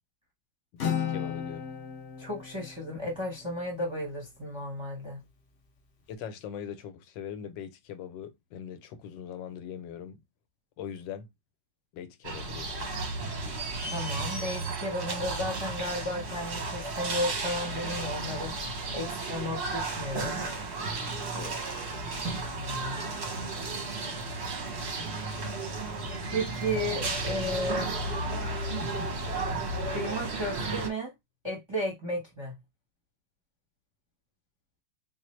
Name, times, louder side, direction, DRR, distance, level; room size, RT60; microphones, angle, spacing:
voice 1, 0.7-1.7 6.1-10.2 10.8-11.3 11.9-13.0 21.3-21.7, left 8 dB, 85° left, 1.3 m, -41 dB
Acoustic guitar, 0.8-4.5, left 8 dB, 60° left, 0.7 m, -36 dB
voice 2, 2.2-5.2 13.9-18.5 18.9-20.4 22.4-23.1 26.3-27.9 29.8-31.1 31.4-32.5, equal, 20° right, 0.8 m, -34 dB
sound 1, 12.2-30.9, right 3 dB, 50° right, 0.9 m, -33 dB
3.9 x 2.4 x 3.1 m
omnidirectional pair, 2.0 m